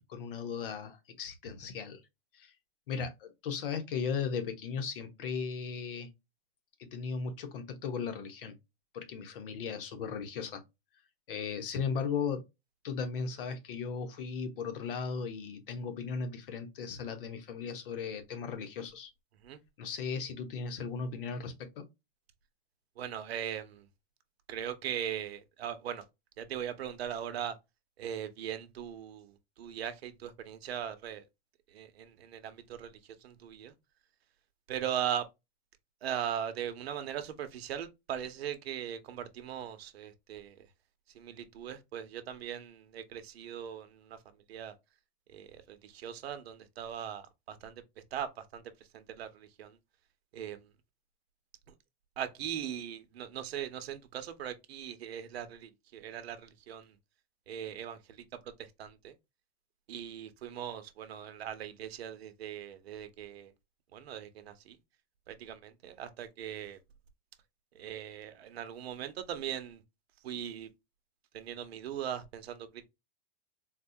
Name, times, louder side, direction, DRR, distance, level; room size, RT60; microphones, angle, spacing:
voice 1, 0.0-2.0 2.3-2.5 2.9-6.1 6.8-8.5 8.9-10.6 11.3-12.4 12.8-19.1 19.8-21.9, left 5 dB, 60° left, 1.0 m, -37 dB
voice 2, 23.0-23.9 24.5-26.0 26.4-27.5 28.0-31.2 31.7-33.7 34.7-35.3 36.0-40.7 41.1-44.2 44.5-44.7 45.3-47.8 48.1-48.6 48.9-49.8 50.3-50.6 52.2-56.9 57.5-58.2 58.6-59.1 59.9-63.5 63.9-64.8 65.3-66.8 67.7-69.8 70.2-70.7 71.3-72.9, right 9 dB, 75° right, 0.9 m, -39 dB
4.2 x 2.3 x 2.6 m
supercardioid pair, 170°, 32 cm